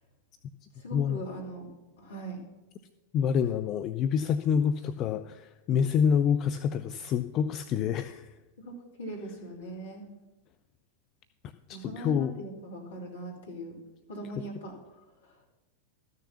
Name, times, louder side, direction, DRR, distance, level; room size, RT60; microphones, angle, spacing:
voice 1, 0.7-1.7 2.0-2.4 8.6-10.0 11.7-13.8 14.1-15.4, right 2 dB, 65° left, -1 dB, 2.9 m, -41 dB
voice 2, 3.1-8.3 11.7-12.3, left 7 dB, 35° left, 10 dB, 0.4 m, -27 dB
13.5 x 6.7 x 5.7 m, 1.1 s
figure-of-eight pair, 90°, 0 cm